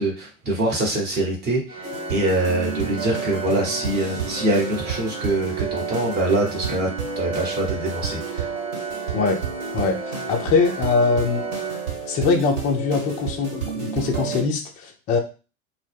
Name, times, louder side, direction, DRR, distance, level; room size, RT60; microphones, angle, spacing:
voice 1, 0.0-6.9 7.2-8.5, right 1 dB, 25° right, 0 dB, 0.9 m, -24 dB
Organ, 1.7-12.5, right 4 dB, 85° right, 0.8 m, -36 dB
sound 1, 1.8-14.4, right 5 dB, 65° right, 1.2 m, -31 dB
voice 2, 10.3-11.5 12.1-15.2, left 4 dB, 20° left, 2 dB, 0.3 m, -22 dB
2.1 x 2.1 x 3.2 m, 0.33 s
figure-of-eight pair, 85°, 42 cm